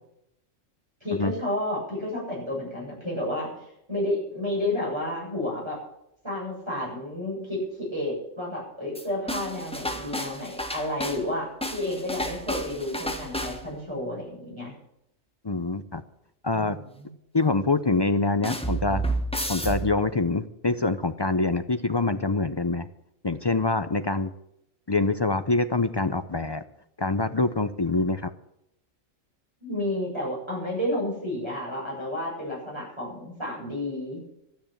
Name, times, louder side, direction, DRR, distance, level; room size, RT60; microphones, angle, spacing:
voice 1, 1.0-3.5 3.9-5.8 6.2-14.7 16.5-17.1 29.6-34.2, left 1 dB, 20° right, -4 dB, 7.8 m, -31 dB
sound 1, 8.9-11.3 11.6-13.8 18.4-20.3, right 1 dB, 5° left, 1.1 m, -31 dB
voice 2, 15.4-16.0 16.4-16.8 17.3-19.0 19.5-22.9 23.2-24.3 24.9-26.6 27.0-28.3, left 3 dB, 35° left, 11 dB, 0.4 m, -25 dB
12.5 x 9.5 x 8.7 m, 0.79 s
omnidirectional pair, 1.4 m